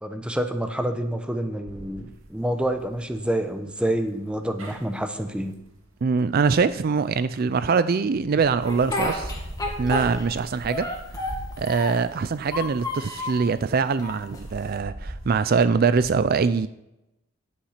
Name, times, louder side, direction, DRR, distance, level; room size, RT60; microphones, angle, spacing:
voice 1, 0.0-5.6, right 1 dB, 5° right, 0.9 m, -28 dB
sound 1, 1.7-7.6 8.2-16.1, right 1 dB, 85° right, 2.4 m, -42 dB
voice 2, 6.0-9.3 9.8-10.9 11.6-16.7, right 5 dB, 50° right, 0.4 m, -23 dB
Speech, 8.6-10.4 10.7-12.1 12.5-13.4 14.0-14.8, left 1 dB, 20° left, 2.1 m, -31 dB
11.5 x 8.8 x 5.8 m
head